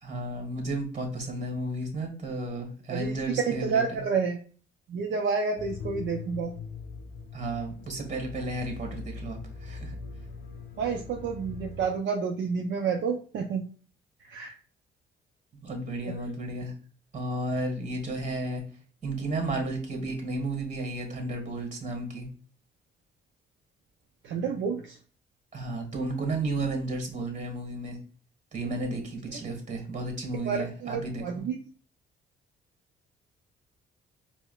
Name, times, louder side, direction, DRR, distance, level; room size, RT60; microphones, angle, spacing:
voice 1, 0.0-4.0 7.3-10.0 15.6-16.7 17.1-18.6 19.0-22.3 25.5-28.0 28.5-31.4, right 2 dB, 40° right, 3 dB, 1.3 m, -33 dB
voice 2, 2.9-4.4 4.9-6.5 10.8-13.6 14.2-14.5 24.2-25.0 30.4-31.6, right 5 dB, 65° right, 1 dB, 0.5 m, -29 dB
sound 1, 5.6-11.9, left 4 dB, 55° left, 0.6 m, -41 dB
4.7 x 2.1 x 2.2 m, 0.41 s
cardioid pair, 90°, 20 cm